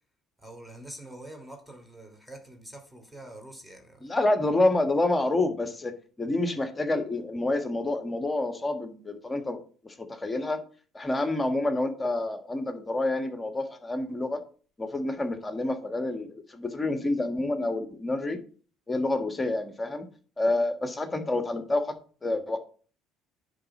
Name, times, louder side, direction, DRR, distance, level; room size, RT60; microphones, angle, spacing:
voice 1, 0.4-4.1, right 1 dB, 5° right, 2.8 m, -45 dB
voice 2, 4.0-9.6 9.8-10.6 10.9-14.4 14.8-18.4 18.9-20.1 20.4-22.6, left 2 dB, 20° left, 1.5 m, -28 dB
10.0 x 4.0 x 6.0 m
hypercardioid pair, 65°, 0 cm